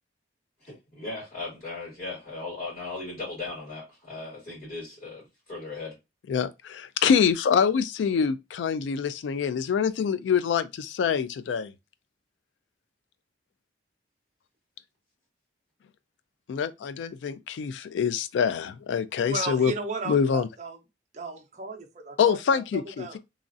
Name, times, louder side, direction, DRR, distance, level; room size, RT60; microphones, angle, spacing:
voice 1, 0.6-6.0, left 3 dB, 40° left, 1.8 m, -37 dB
voice 2, 6.3-11.7 16.5-19.7 20.1-20.5 22.2-23.2, left 7 dB, 80° left, 0.3 m, -25 dB
voice 3, 19.2-20.8 21.1-23.2, right 3 dB, 40° right, 0.5 m, -35 dB
3.0 x 2.4 x 2.5 m
head